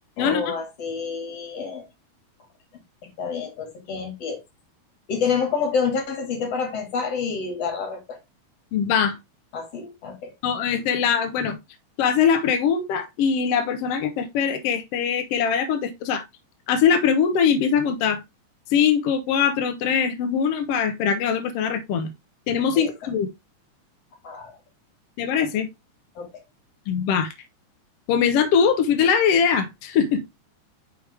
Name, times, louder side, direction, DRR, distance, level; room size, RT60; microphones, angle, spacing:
voice 1, 0.2-1.9 3.2-4.4 5.1-8.2 9.5-10.3 22.7-22.9 24.2-24.6 26.2-26.3, left 5 dB, 55° left, 2.9 m, -28 dB
voice 2, 8.7-9.2 10.4-11.6 12.0-16.2 16.7-18.2 18.7-22.1 22.5-23.3 25.2-25.7 26.9-27.3 28.1-30.2, left 7 dB, 75° left, 1.4 m, -22 dB
6.0 x 4.9 x 3.3 m
omnidirectional pair, 3.5 m